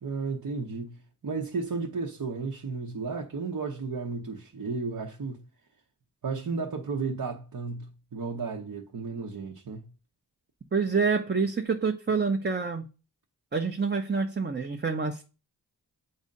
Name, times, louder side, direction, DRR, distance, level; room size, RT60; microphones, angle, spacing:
voice 1, 0.0-5.4 6.2-9.9, right 4 dB, 60° right, 1.0 m, -33 dB
voice 2, 10.7-12.9 13.5-15.2, right 5 dB, 25° right, 0.7 m, -27 dB
7.9 x 2.7 x 5.2 m
cardioid pair, 50°, 39 cm